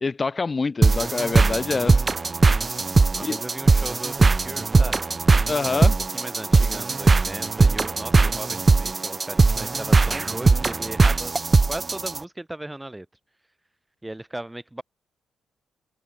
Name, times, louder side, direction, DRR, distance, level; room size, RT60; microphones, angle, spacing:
voice 1, 0.0-2.1 3.2-3.4 5.5-6.0, left 4 dB, 30° left, 0.6 m, -26 dB
sound 1, 0.8-12.2, right 3 dB, 25° right, 0.8 m, -20 dB
voice 2, 3.1-5.0 5.7-11.3 11.7-13.1 14.0-14.8, right 1 dB, 10° right, 5.3 m, -37 dB
cardioid pair, 90°, 0 cm